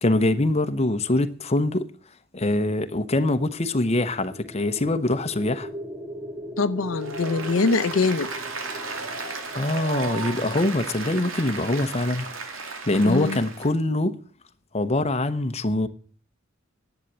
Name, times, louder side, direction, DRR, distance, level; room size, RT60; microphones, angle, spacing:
voice 1, 0.0-1.9 2.3-5.7 9.5-12.2 12.6-14.1 14.7-15.9, left 2 dB, 30° left, 0.9 m, -24 dB
sound 1, 3.3-11.4, equal, 10° right, 1.0 m, -39 dB
voice 2, 6.6-8.3 13.0-13.4, left 3 dB, 90° left, 0.6 m, -23 dB
Applause, 6.9-13.7, right 4 dB, 90° right, 2.5 m, -34 dB
11.0 x 8.1 x 8.5 m
head